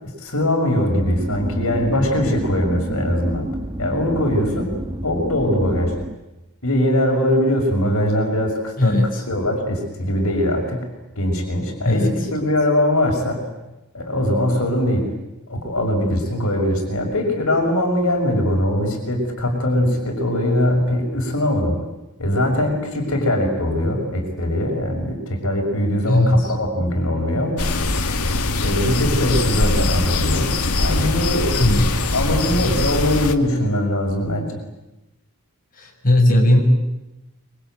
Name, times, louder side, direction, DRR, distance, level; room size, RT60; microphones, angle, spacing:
voice 1, 0.0-3.5 3.8-4.7 5.0-5.9 6.6-9.0 9.3-10.9 11.2-13.4 13.9-15.1 15.5-21.8 22.2-27.6 28.6-31.8 32.1-34.5, left 1 dB, 70° left, 3 dB, 6.2 m, -21 dB
sound 1, 1.0-6.1, right 1 dB, 20° right, 1.7 m, -29 dB
voice 2, 8.8-9.2 11.8-12.1 26.1-26.5 31.6-32.1 35.8-36.6, left 1 dB, 40° left, 0 dB, 6.4 m, -17 dB
sound 2, 27.6-33.3, left 2 dB, 90° left, 2.2 m, -21 dB
26.5 x 24.5 x 9.2 m, 0.99 s
head